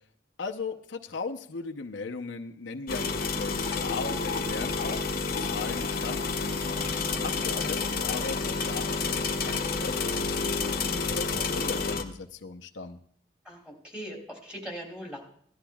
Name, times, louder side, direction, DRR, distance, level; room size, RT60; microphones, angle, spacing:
voice 1, 0.4-6.6 7.2-13.0, left 4 dB, 90° left, 3 dB, 0.8 m, -38 dB
sound 1, 2.9-12.0, left 4 dB, 50° left, 1.0 m, -29 dB
voice 2, 6.9-7.2 13.4-15.2, equal, 5° right, -2 dB, 2.8 m, -40 dB
17.0 x 11.5 x 2.3 m, 0.62 s
head